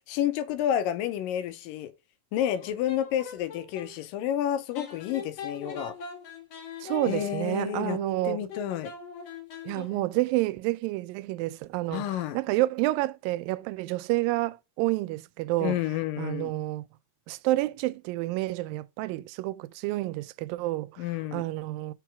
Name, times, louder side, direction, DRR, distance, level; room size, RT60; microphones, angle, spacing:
voice 1, 0.1-1.9 2.3-5.9 7.1-8.0 8.2-8.9 11.9-12.4 15.6-16.5 21.0-21.4, left 11 dB, 85° left, 2.4 m, -30 dB
sound 1, 2.5-3.9 4.7-10.2, left 6 dB, 55° left, 2.0 m, -40 dB
voice 2, 6.8-8.4 9.7-15.8 16.2-16.8 17.3-21.0 21.3-21.9, right 18 dB, 90° right, 2.3 m, -29 dB
6.2 x 5.8 x 4.7 m
omnidirectional pair, 4.0 m